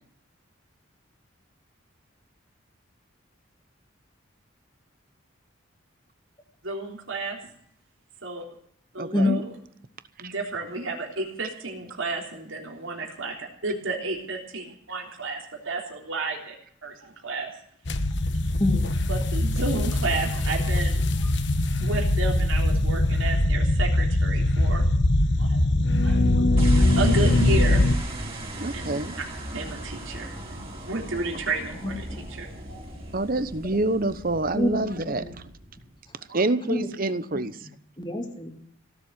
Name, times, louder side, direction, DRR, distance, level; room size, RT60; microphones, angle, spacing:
voice 1, 6.6-7.4 8.2-8.4 8.9-9.5 10.2-16.6 16.8-17.5 19.1-21.3 21.8-24.8 25.4-25.6 26.0-26.4 26.7-27.8 28.7-29.0 29.5-30.5 30.8-32.8 36.3-36.4, right 3 dB, 75° right, 0 dB, 3.6 m, -32 dB
voice 2, 9.0-9.4 10.2-10.3 28.6-29.2 33.1-35.2 36.3-37.7, right 2 dB, 45° right, 13 dB, 1.0 m, -27 dB
sound 1, 17.9-28.0, left 1 dB, 60° left, 1.2 m, -22 dB
sound 2, 26.6-36.0, right 1 dB, 25° right, 3.5 m, -37 dB
voice 3, 34.5-35.3 36.7-36.9 38.0-38.5, left 2 dB, 20° left, 4 dB, 2.5 m, -26 dB
17.5 x 7.6 x 9.9 m, 0.68 s
head